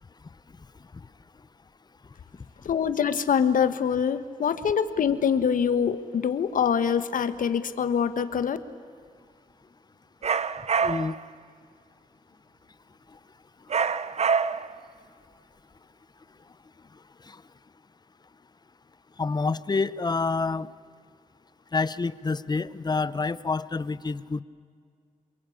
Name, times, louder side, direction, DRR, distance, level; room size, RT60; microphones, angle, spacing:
voice 1, 2.6-8.6, left 7 dB, 75° left, 12 dB, 1.4 m, -24 dB
sound 1, 10.2-11.2 13.7-14.8, right 6 dB, 50° right, 0.8 m, -26 dB
voice 2, 10.8-11.1 17.3-17.4 19.2-20.7 21.7-24.4, left 4 dB, 30° left, 17 dB, 0.8 m, -27 dB
27.5 x 23.0 x 8.5 m, 2.2 s
cardioid pair, 80°, 14 cm